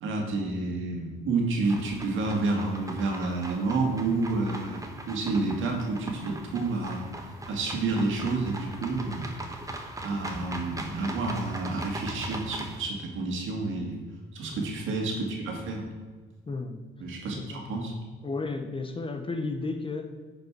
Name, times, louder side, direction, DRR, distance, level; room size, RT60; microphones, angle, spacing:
voice 1, 0.0-7.0 7.5-9.3 10.0-14.0 14.3-15.9 17.0-17.9, right 3 dB, 80° right, 1 dB, 1.9 m, -29 dB
sound 1, 1.6-12.8, right 2 dB, 15° right, 1.1 m, -40 dB
voice 2, 16.5-16.8 17.3-18.0 18.2-20.1, left 3 dB, 25° left, 7 dB, 0.9 m, -34 dB
9.5 x 5.1 x 4.7 m, 1.4 s
cardioid pair, 90°, 20 cm